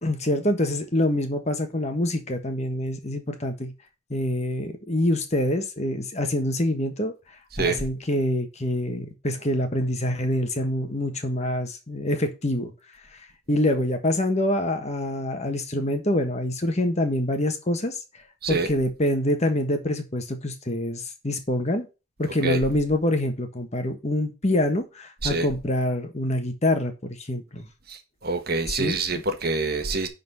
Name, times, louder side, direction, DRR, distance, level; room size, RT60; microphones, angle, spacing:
voice 1, 0.0-3.7 4.1-7.1 7.6-12.7 13.1-13.2 13.5-21.9 22.2-27.7 28.7-29.0, left 1 dB, 30° left, 1.3 m, -26 dB
voice 2, 7.5-7.9 18.4-18.7 22.4-22.6 25.2-25.5 27.9-30.1, right 3 dB, 45° right, 1.4 m, -26 dB
10.5 x 4.1 x 5.5 m
head